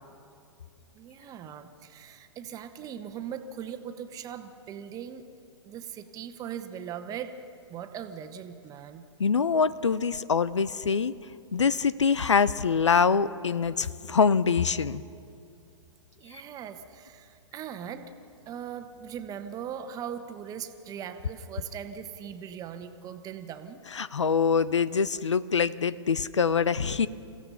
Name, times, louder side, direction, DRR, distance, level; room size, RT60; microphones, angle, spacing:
voice 1, 0.9-5.2 5.6-7.3 7.7-9.0 16.2-18.1 18.5-23.8, right 8 dB, 25° right, 8 dB, 1.3 m, -40 dB
voice 2, 9.2-11.2 11.5-15.0 23.9-27.1, left 5 dB, 80° left, 18 dB, 0.7 m, -24 dB
29.0 x 16.0 x 5.7 m, 2.5 s
figure-of-eight pair, 115°, 15 cm